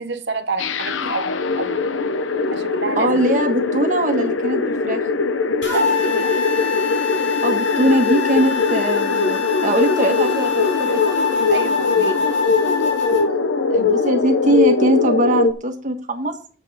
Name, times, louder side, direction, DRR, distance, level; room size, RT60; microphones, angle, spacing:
voice 1, 0.0-1.8 2.5-3.2 5.7-6.3 11.5-12.3, right 4 dB, 60° right, 1.0 m, -29 dB
sound 1, 0.6-15.5, left 4 dB, 90° left, 0.7 m, -21 dB
voice 2, 2.7-5.0 7.2-11.1 13.7-16.3, right 1 dB, 40° right, 1.4 m, -21 dB
sound 2, 5.6-13.2, left 6 dB, 70° left, 3.0 m, -24 dB
7.4 x 7.2 x 5.4 m
head